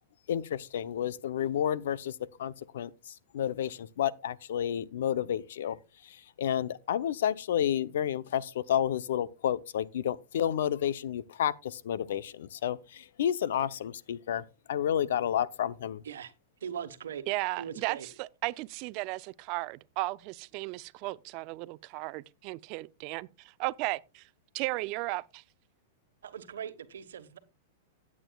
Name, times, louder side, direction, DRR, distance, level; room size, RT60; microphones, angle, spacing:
voice 1, 0.3-5.8 6.0-16.0, left 10 dB, 75° left, 0.6 m, -31 dB
voice 2, 16.6-17.2 17.6-18.1 26.2-27.4, right 8 dB, 90° right, 1.2 m, -40 dB
voice 3, 17.3-24.3 24.5-25.4, right 21 dB, 45° right, 0.5 m, -35 dB
16.0 x 8.6 x 2.3 m
hypercardioid pair, 135°, 0 cm